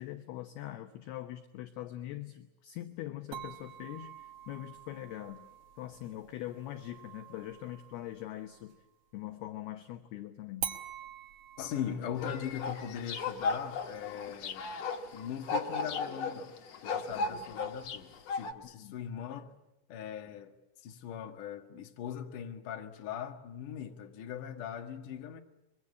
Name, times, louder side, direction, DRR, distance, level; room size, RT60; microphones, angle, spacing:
voice 1, 0.0-5.5 5.8-8.8 9.1-10.8 18.6-18.9, left 14 dB, 70° left, 2.7 m, -42 dB
sound 1, 3.3-8.9 10.6-15.6, right 9 dB, 65° right, 1.7 m, -47 dB
voice 2, 11.6-14.7 15.1-16.6 16.8-19.5 19.9-20.5 20.8-25.4, left 9 dB, 55° left, 2.7 m, -40 dB
sound 2, 12.2-18.5, left 4 dB, 90° left, 1.4 m, -36 dB
24.0 x 23.0 x 8.6 m
omnidirectional pair, 5.5 m